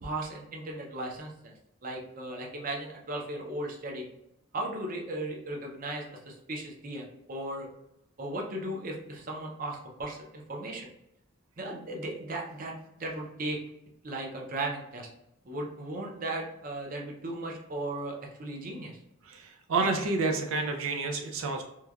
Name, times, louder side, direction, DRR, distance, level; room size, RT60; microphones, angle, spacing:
voice 1, 0.0-1.5 1.8-4.0 4.5-7.7 8.2-10.9 11.6-13.6 14.0-15.1 15.4-19.0, right 1 dB, 45° right, 0 dB, 0.6 m, -36 dB
voice 2, 19.2-21.6, right 3 dB, 90° right, 2 dB, 0.4 m, -29 dB
3.1 x 2.2 x 2.3 m, 0.83 s
head